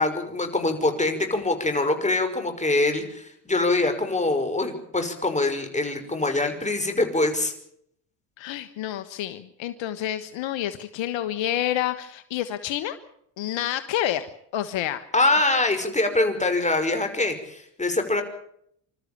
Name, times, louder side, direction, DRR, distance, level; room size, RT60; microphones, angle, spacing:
voice 1, 0.0-7.5 15.1-18.2, left 2 dB, 15° left, 6 dB, 5.6 m, -24 dB
voice 2, 8.4-13.0 13.4-15.0, left 12 dB, 65° left, 11 dB, 1.5 m, -29 dB
27.5 x 13.5 x 8.7 m, 0.71 s
supercardioid pair, 70°, 49 cm